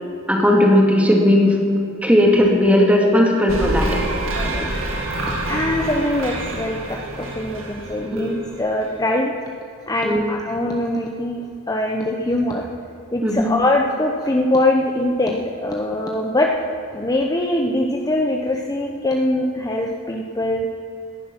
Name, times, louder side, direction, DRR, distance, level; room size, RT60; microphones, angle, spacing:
voice 1, 0.3-1.6 2.0-3.9 8.1-8.3 10.0-10.2 13.2-13.5, left 1 dB, 5° right, 0 dB, 2.1 m, -16 dB
sound 1, 3.5-8.9, right 1 dB, 80° right, 2.1 m, -27 dB
voice 2, 4.3-4.7 5.5-9.3 9.9-11.4 11.7-12.6 13.1-16.5 16.9-20.7, left 1 dB, 20° left, 1 dB, 0.8 m, -22 dB
18.0 x 11.0 x 6.0 m, 2.5 s
head